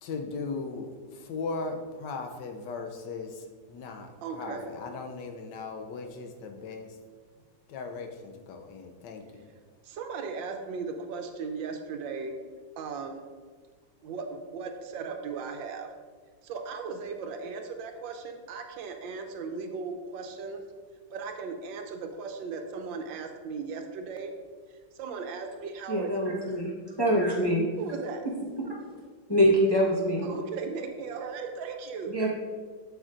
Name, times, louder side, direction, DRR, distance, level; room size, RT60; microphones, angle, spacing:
voice 1, 0.0-7.0 7.7-9.5, left 4 dB, 75° left, 5 dB, 1.2 m, -38 dB
voice 2, 4.2-4.8 9.8-12.3 12.8-13.2 14.0-15.9 16.4-20.6 21.1-24.3 24.9-26.1 27.8-28.3 30.2-32.2, right 5 dB, 90° right, 5 dB, 1.4 m, -37 dB
voice 3, 25.9-26.7 27.0-27.7 28.6-28.7 29.3-30.3 32.1-32.3, equal, 25° left, -4 dB, 0.5 m, -24 dB
7.9 x 6.3 x 2.5 m, 1.5 s
omnidirectional pair, 2.0 m